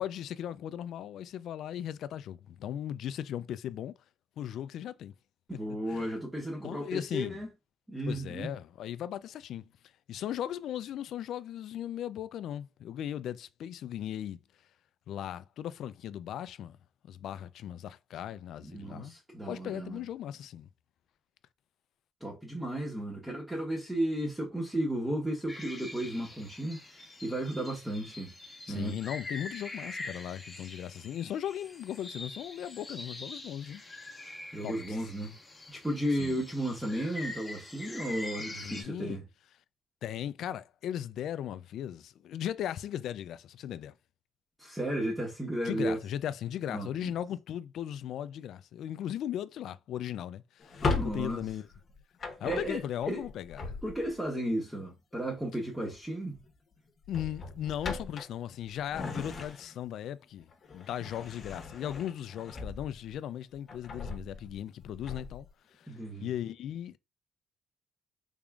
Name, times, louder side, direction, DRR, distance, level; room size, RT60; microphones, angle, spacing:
voice 1, 0.0-3.9 4.4-5.1 5.9-6.1 6.6-7.4 8.1-9.7 10.1-14.4 15.1-16.8 17.0-19.2 19.5-20.7 28.7-33.8 34.6-35.0 36.2-36.4 38.6-39.2 40.0-43.9 45.6-51.6 52.4-53.7 57.1-65.5 65.7-67.0, left 10 dB, 75° left, 0.3 m, -37 dB
voice 2, 5.5-7.5 7.9-8.5 18.6-20.0 22.2-28.3 28.7-29.0 34.5-35.3 35.7-39.3 44.6-46.0 46.7-47.1 50.8-51.4 52.4-53.2 53.8-56.4 65.9-66.3, right 1 dB, 10° right, 1.1 m, -34 dB
sound 1, 25.5-38.8, left 2 dB, 20° left, 1.1 m, -44 dB
Drawer open or close, 50.6-54.3 55.7-56.1 56.4-56.6 57.0-59.9 60.4-63.1 63.5-65.5, left 4 dB, 50° left, 1.0 m, -38 dB
3.6 x 3.5 x 2.3 m
cardioid pair, 90°, 0 cm